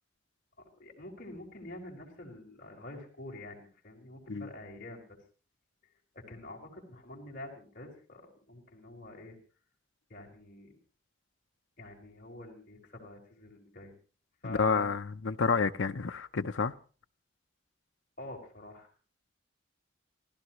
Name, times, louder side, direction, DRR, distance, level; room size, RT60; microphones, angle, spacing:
voice 1, 0.6-5.2 6.1-9.4 10.1-10.8 11.8-13.9 14.4-14.9 18.2-18.9, left 1 dB, 45° left, 5.4 m, -47 dB
voice 2, 14.4-16.7, left 5 dB, 80° left, 0.7 m, -29 dB
28.0 x 16.0 x 3.1 m
head